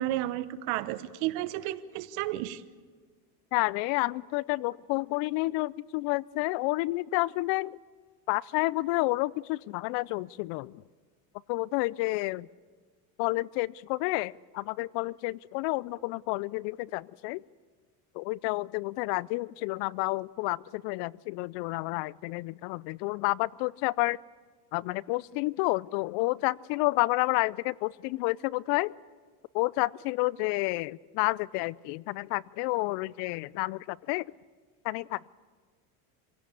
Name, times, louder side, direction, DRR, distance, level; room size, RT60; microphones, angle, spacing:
voice 1, 0.0-2.6, right 14 dB, 70° right, 14 dB, 1.2 m, -32 dB
voice 2, 3.5-7.8 8.3-10.8 11.5-12.5 13.2-17.4 18.2-24.2 24.7-28.9 29.5-34.2 34.8-35.3, left 21 dB, 65° left, 24 dB, 0.6 m, -30 dB
25.5 x 16.5 x 8.5 m, 1.5 s
supercardioid pair, 105°, 44 cm